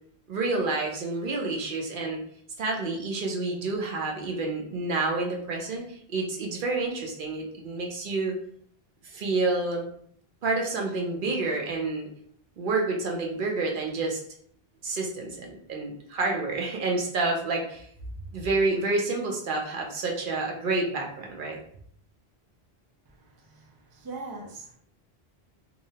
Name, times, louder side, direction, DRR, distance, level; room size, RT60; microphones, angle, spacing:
voice 1, 0.3-2.2 2.6-8.4 9.0-9.9 10.4-12.1 12.6-14.2 14.8-17.9 18.3-21.6, right 3 dB, 60° right, 0 dB, 0.7 m, -29 dB
voice 2, 23.4-24.8, right 3 dB, 40° right, -1 dB, 0.3 m, -41 dB
2.7 x 2.0 x 2.7 m, 0.62 s
omnidirectional pair, 1.1 m